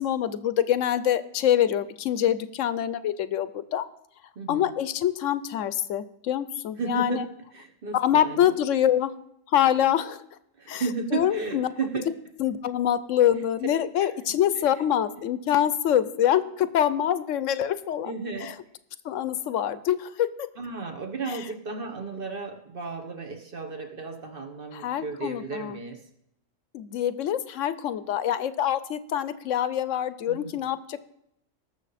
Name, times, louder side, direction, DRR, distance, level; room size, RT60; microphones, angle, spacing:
voice 1, 0.0-3.8 4.5-7.2 7.9-9.1 9.5-10.2 10.7-10.8 11.1-11.7 12.4-18.1 18.4-18.5 19.0-20.5 21.3-21.4 24.7-25.8 26.7-31.0, left 10 dB, 80° left, 15 dB, 1.0 m, -25 dB
voice 2, 4.3-4.7 6.8-7.3 7.5-8.5 10.6-12.1 14.0-14.1 18.0-18.5 20.6-26.0 30.3-30.6, right 4 dB, 45° right, 5 dB, 1.4 m, -34 dB
19.0 x 6.8 x 4.1 m, 0.76 s
omnidirectional pair, 1.3 m